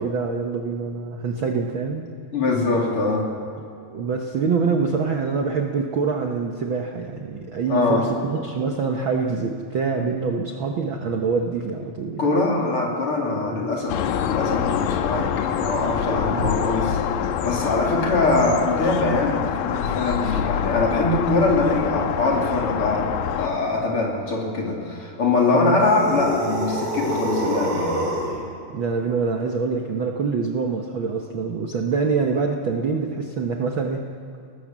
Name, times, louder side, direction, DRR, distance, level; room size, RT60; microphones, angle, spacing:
voice 1, 0.0-2.0 3.9-12.4 13.3-13.7 16.3-16.6 20.2-20.4 25.5-25.8 28.7-34.0, right 5 dB, 75° right, 2 dB, 1.1 m, -25 dB
voice 2, 2.3-3.3 7.7-8.1 12.2-15.3 15.6-17.0 17.4-28.0, left 3 dB, 40° left, -1 dB, 3.5 m, -23 dB
sound 1, 13.9-23.5, left 8 dB, 80° left, 2.4 m, -25 dB
sound 2, 25.8-28.4, right 1 dB, 40° right, 5.7 m, -27 dB
20.5 x 19.0 x 7.4 m, 2.4 s
omnidirectional pair, 4.0 m